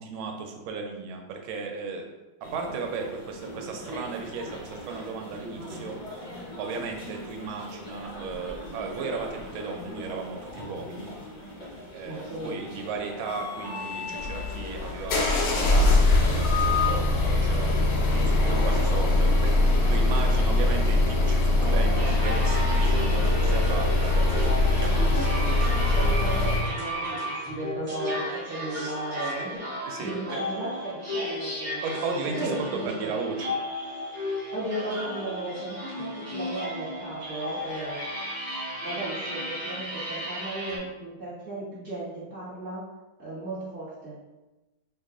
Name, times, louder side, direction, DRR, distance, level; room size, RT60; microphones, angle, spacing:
voice 1, 0.0-2.0 2.5-6.0 6.6-11.1 11.9-25.2 29.4-29.6 29.8-30.4 31.8-33.5, right 4 dB, 80° right, 3 dB, 1.4 m, -35 dB
sound 1, 2.4-16.9, left 5 dB, 55° left, 0.5 m, -37 dB
voice 2, 12.0-12.6 21.6-22.1 25.2-27.2 27.5-29.6 30.0-31.8 32.4-33.1 34.5-38.1 38.8-42.8 43.2-44.2, right 2 dB, 45° right, -9 dB, 1.3 m, -35 dB
sound 2, 14.2-26.7, left 2 dB, 85° left, 0.8 m, -22 dB
sound 3, 21.9-40.8, equal, 30° right, 1.2 m, -34 dB
3.1 x 2.3 x 3.6 m, 1.1 s
omnidirectional pair, 2.2 m